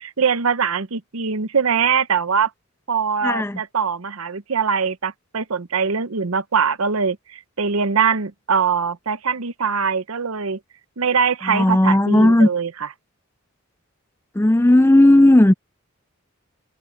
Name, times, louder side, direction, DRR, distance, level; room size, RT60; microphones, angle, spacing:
voice 1, 0.0-2.5 2.9-10.6 11.0-12.9, right 6 dB, 75° right, 0.8 m, -22 dB
voice 2, 3.2-3.6 11.5-12.5 14.4-15.5, left 1 dB, 10° left, 0.4 m, -14 dB
head